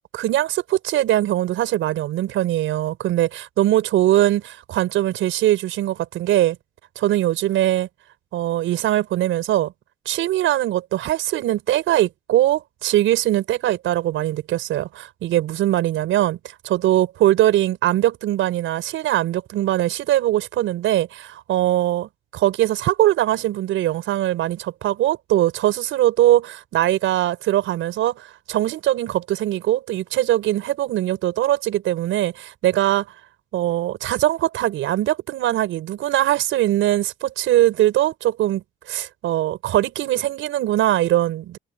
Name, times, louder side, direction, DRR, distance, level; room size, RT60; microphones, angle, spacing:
voice 1, 0.1-6.6 7.0-7.9 8.3-9.7 10.1-33.1 33.5-41.6, right 14 dB, 85° right, 5.5 m, -21 dB
cardioid pair, 90°, 20 cm